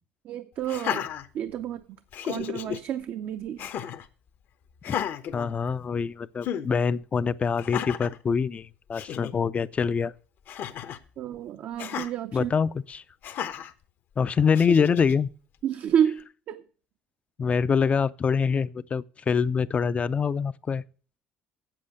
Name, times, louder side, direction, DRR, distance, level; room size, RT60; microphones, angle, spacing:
voice 1, 0.2-1.1 1.3-2.0 2.2-3.7 11.2-12.5 15.6-16.6, right 9 dB, 60° right, 0.6 m, -29 dB
Laughter, 0.6-1.7 2.1-2.8 3.6-4.1 4.8-6.0 6.4-6.7 7.6-8.2 8.7-8.8 8.9-9.3 10.5-11.0 11.8-12.1 13.2-13.7 14.5-15.1, left 9 dB, 60° left, 0.8 m, -33 dB
voice 2, 5.3-10.1 12.3-13.0 14.2-15.3 17.4-20.8, left 6 dB, 35° left, 0.4 m, -25 dB
8.0 x 7.6 x 6.5 m
supercardioid pair, 85°, 4 cm